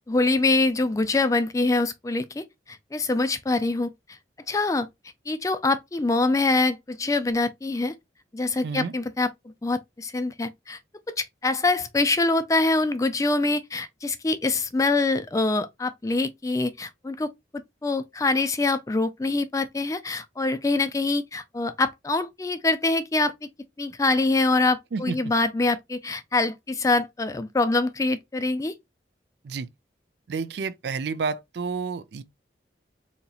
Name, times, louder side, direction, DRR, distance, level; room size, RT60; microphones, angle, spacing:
voice 1, 0.1-4.2 4.5-4.9 5.3-7.9 8.3-9.3 9.6-10.8 11.2-23.3 23.8-28.7, left 3 dB, 15° left, 0.3 m, -24 dB
voice 2, 30.3-32.2, right 5 dB, 65° right, 0.4 m, -30 dB
4.1 x 2.8 x 2.3 m
head